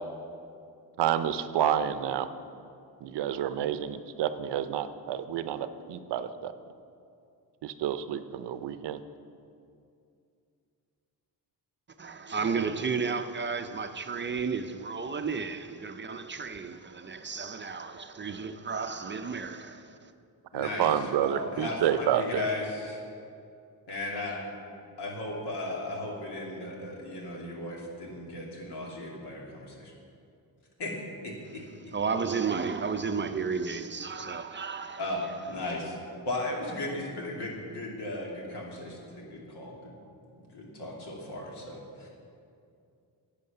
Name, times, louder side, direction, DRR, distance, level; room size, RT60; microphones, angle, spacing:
voice 1, 1.0-2.3 3.0-6.5 7.6-9.0 20.5-22.5, right 10 dB, 90° right, 12 dB, 0.7 m, -29 dB
voice 2, 12.0-20.1 31.9-35.4, right 5 dB, 30° right, 8 dB, 0.5 m, -33 dB
voice 3, 20.5-23.0 23.9-24.4 25.0-29.9 30.8-30.9 31.2-31.6 35.0-36.0 36.2-39.9 40.4-42.1, left 2 dB, 80° left, -2 dB, 2.6 m, -36 dB
11.0 x 8.3 x 6.7 m, 2.5 s
cardioid pair, 105°, 40 cm